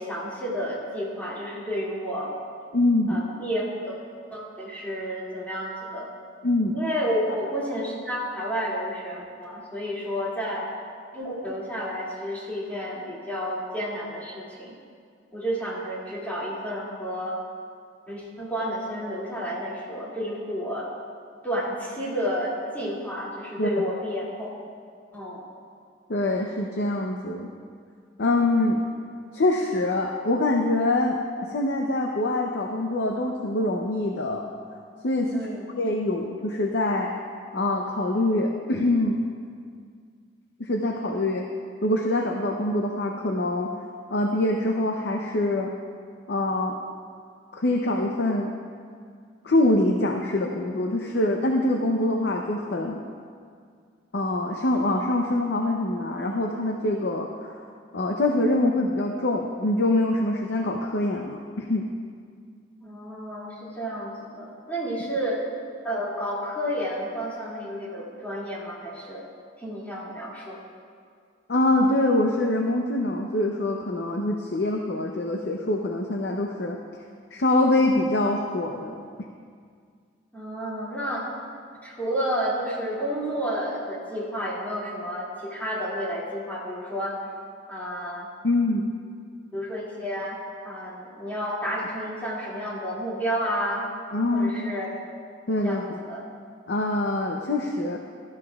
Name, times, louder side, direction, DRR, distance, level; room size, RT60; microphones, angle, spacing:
voice 1, 0.0-2.3 3.1-4.0 4.3-6.1 6.7-10.7 11.1-14.7 15.3-17.4 18.1-20.9 21.4-24.5 25.1-25.4 35.3-35.7 62.8-65.4 65.8-69.3 69.6-70.6 80.3-81.3 81.8-87.2 87.7-88.3 89.5-90.4 90.6-93.8 94.3-94.9 95.6-95.8 96.1-96.2, equal, 10° left, -7 dB, 2.4 m, -31 dB
voice 2, 2.7-3.2 6.4-6.8 23.6-23.7 26.1-27.5 28.2-28.8 29.3-31.2 31.5-34.5 35.0-35.5 35.8-37.1 37.5-39.2 40.6-41.4 41.8-43.7 44.1-45.7 46.3-46.8 47.5-48.5 49.4-53.0 54.1-57.7 57.9-61.9 71.5-76.8 77.3-79.0 88.4-88.9 94.1-94.7 95.5-95.8 96.7-98.0, left 2 dB, 60° left, 2 dB, 0.7 m, -24 dB
16.0 x 13.0 x 2.4 m, 2.1 s
head